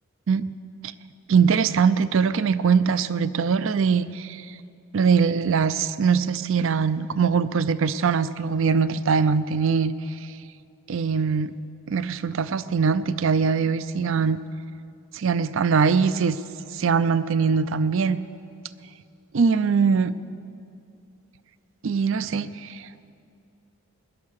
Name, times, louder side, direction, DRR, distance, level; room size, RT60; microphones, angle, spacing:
voice 1, 1.3-4.4 4.9-9.9 10.9-11.5 11.9-14.4 15.1-16.4 16.7-18.2 19.3-20.1 21.8-22.9, right 5 dB, 60° right, 15 dB, 0.4 m, -22 dB
19.0 x 10.5 x 6.4 m, 2.5 s
head